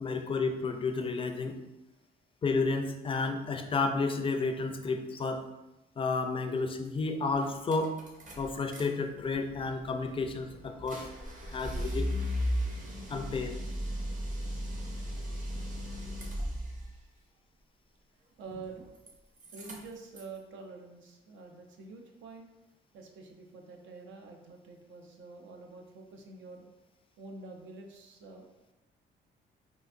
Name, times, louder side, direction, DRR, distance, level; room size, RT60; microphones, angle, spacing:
voice 1, 0.0-1.6 2.4-5.4 6.0-7.9 8.4-11.1 11.5-12.1 13.1-13.6, left 3 dB, 25° left, 5 dB, 0.4 m, -31 dB
sound 1, 6.8-6.9 7.3-8.8 9.2-16.9 18.4-19.1 19.4-20.4, equal, 40° right, 0.9 m, -36 dB
voice 2, 18.4-18.8 19.5-22.4 22.9-26.7 27.2-28.7, right 3 dB, 75° right, 3 dB, 0.6 m, -47 dB
3.8 x 2.5 x 2.5 m, 0.97 s
cardioid pair, 90°, 20 cm